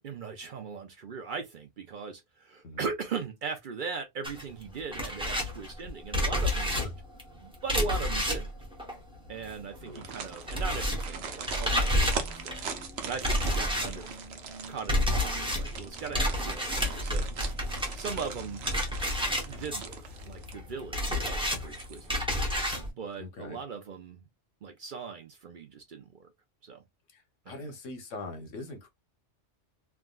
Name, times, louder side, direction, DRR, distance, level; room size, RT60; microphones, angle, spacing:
voice 1, 0.0-6.9 7.4-8.5 9.3-12.6 13.0-14.1 14.7-17.3 17.9-18.6 19.5-22.3 22.8-24.2 24.6-26.3 26.6-26.8 27.5-27.7, right 5 dB, 55° right, 0.6 m, -39 dB
sound 1, 4.2-9.8 10.0-22.9, left 1 dB, 5° right, 0.6 m, -30 dB
sound 2, 9.8-20.8 21.1-21.2 21.6-22.3 22.6-22.7, right 6 dB, 75° right, 1.0 m, -41 dB
voice 2, 23.2-23.6 27.1-28.9, left 2 dB, 85° left, 1.2 m, -42 dB
3.4 x 2.2 x 2.2 m
omnidirectional pair, 1.2 m